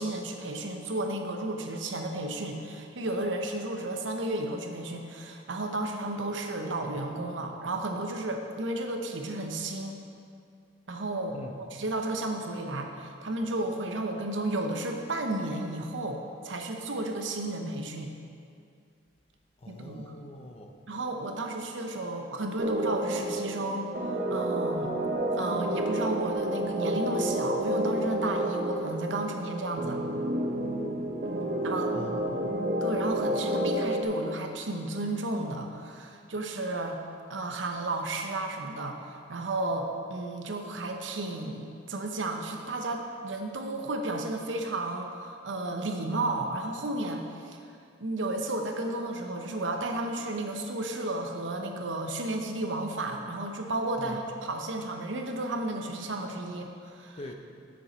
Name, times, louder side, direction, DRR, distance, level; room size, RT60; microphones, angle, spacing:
voice 1, 0.0-10.0 10.9-11.4 11.7-18.1 19.7-20.1 20.9-23.9 24.3-24.9 25.4-30.0 31.6-31.9 32.8-37.0 37.3-47.6 48.0-57.2, right 2 dB, 85° right, 3 dB, 0.8 m, -33 dB
voice 2, 19.6-20.8 31.9-32.5 54.0-54.2 57.2-57.3, left 1 dB, 35° left, 3 dB, 0.6 m, -42 dB
sound 1, 22.6-34.0, right 1 dB, 55° right, 0.7 m, -30 dB
7.6 x 7.0 x 4.4 m, 2.3 s
head